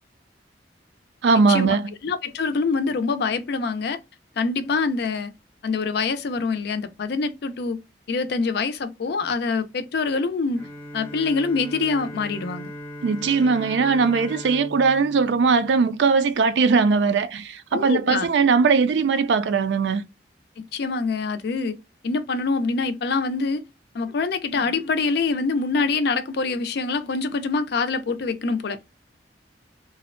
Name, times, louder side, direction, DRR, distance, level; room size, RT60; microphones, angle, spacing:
voice 1, 1.2-1.9 13.0-20.0, right 5 dB, 75° right, 0.3 m, -20 dB
voice 2, 2.0-4.0 4.4-5.3 5.6-7.8 8.1-10.7 10.9-12.7 17.7-18.3 20.7-21.8 22.0-23.6 23.9-28.8, left 4 dB, 65° left, 0.4 m, -25 dB
Bowed string instrument, 10.6-16.4, left 1 dB, 15° left, 0.6 m, -39 dB
2.6 x 2.0 x 2.4 m
head